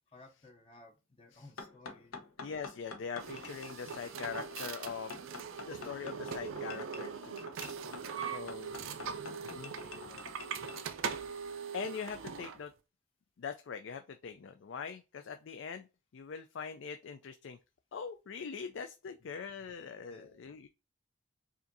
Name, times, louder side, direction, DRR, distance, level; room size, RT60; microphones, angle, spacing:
voice 1, 0.1-2.2 8.0-10.3 19.2-19.4 20.1-20.4, left 2 dB, 25° left, 0.7 m, -59 dB
sound 1, 1.6-10.8, left 4 dB, 85° left, 0.8 m, -47 dB
voice 2, 2.4-5.2 5.7-7.4 8.3-8.7 9.5-9.7 11.7-12.7 13.4-15.9 16.1-17.6 17.9-20.7, left 6 dB, 60° left, 0.4 m, -42 dB
sound 2, 3.2-12.6, right 6 dB, 70° right, 0.5 m, -41 dB
4.9 x 2.6 x 2.6 m
head